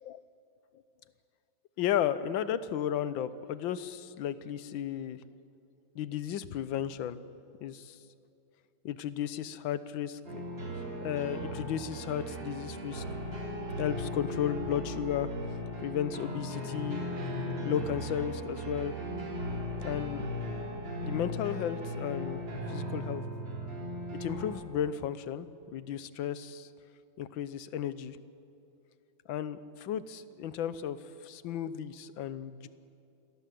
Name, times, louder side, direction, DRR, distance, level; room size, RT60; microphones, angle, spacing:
voice 1, 1.8-5.2 6.0-7.2 7.6-8.0 8.9-10.4 11.0-13.0 13.8-15.3 15.8-17.0 17.6-19.0 19.8-20.3 21.0-22.4 22.7-23.2 24.2-26.7 27.2-28.2 29.3-31.0 31.2-32.7, left 10 dB, 75° left, 14 dB, 1.6 m, -34 dB
sound 1, 10.2-24.5, equal, 65° right, 4.6 m, -37 dB
26.5 x 17.5 x 7.8 m, 2.7 s
omnidirectional pair, 2.1 m